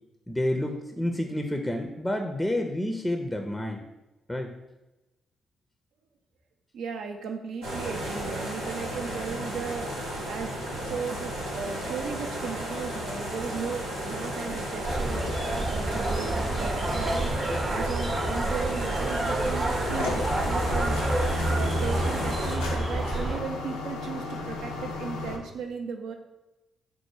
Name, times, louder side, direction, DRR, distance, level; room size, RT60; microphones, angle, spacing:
voice 1, 0.3-3.8 4.3-4.5, left 1 dB, 10° left, 4 dB, 0.5 m, -29 dB
voice 2, 6.7-10.5 10.8-26.1, right 5 dB, 65° right, 4 dB, 0.5 m, -37 dB
sound 1, 7.6-22.6, right 1 dB, 80° right, 0.8 m, -34 dB
sound 2, 14.8-23.4, right 1 dB, 35° right, 0.7 m, -28 dB
sound 3, 19.9-25.4, left 3 dB, 80° left, 0.5 m, -35 dB
4.4 x 2.1 x 4.6 m, 0.99 s
figure-of-eight pair, 40°, 0 cm